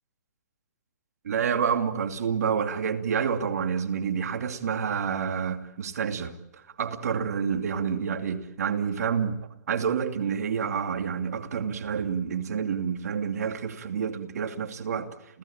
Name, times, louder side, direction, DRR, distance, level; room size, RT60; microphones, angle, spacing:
voice 1, 1.2-9.4 9.7-15.1, right 7 dB, 60° right, 2.7 m, -28 dB
30.0 x 16.5 x 8.8 m
hypercardioid pair, 150°, 9 cm